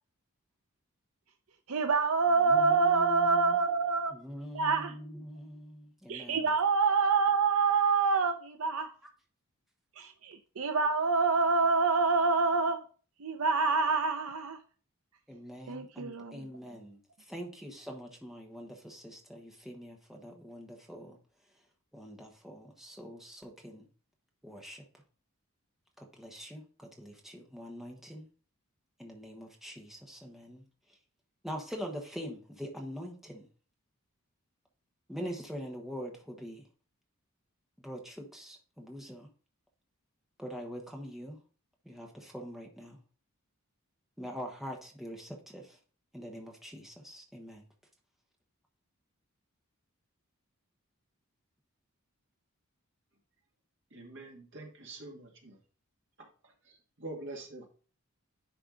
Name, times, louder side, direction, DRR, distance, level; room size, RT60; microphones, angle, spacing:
voice 1, 1.7-4.1 4.5-4.9 6.1-8.9 10.0-12.8 13.2-14.6 15.7-16.3, right 4 dB, 70° right, 0.6 m, -26 dB
voice 2, 2.3-3.6 4.0-6.5 15.3-21.2 21.4-21.7 21.9-23.9 24.4-24.8 26.0-28.3 29.0-31.0 31.4-33.5 35.1-36.7 37.8-39.3 40.4-41.4 41.8-43.0 44.2-45.8 46.1-47.7, equal, ahead, 1.2 m, -44 dB
voice 3, 53.9-55.6 56.2-56.3 56.7-57.7, right 2 dB, 55° right, 2.2 m, -45 dB
10.5 x 4.5 x 3.9 m
head